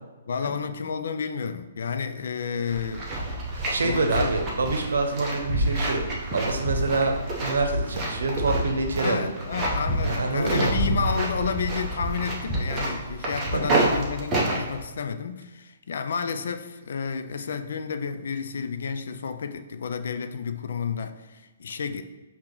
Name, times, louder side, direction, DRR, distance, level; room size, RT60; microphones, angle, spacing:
voice 1, 0.3-3.1 3.8-4.4 9.0-22.0, left 6 dB, 70° left, 9 dB, 0.4 m, -31 dB
sound 1, 2.7-14.8, right 1 dB, 15° right, 0.8 m, -28 dB
voice 2, 3.5-6.0 6.3-9.3 10.1-10.7 13.5-13.8, right 3 dB, 90° right, 4 dB, 0.8 m, -26 dB
4.7 x 2.8 x 3.8 m, 1.2 s
hypercardioid pair, 165°, 0 cm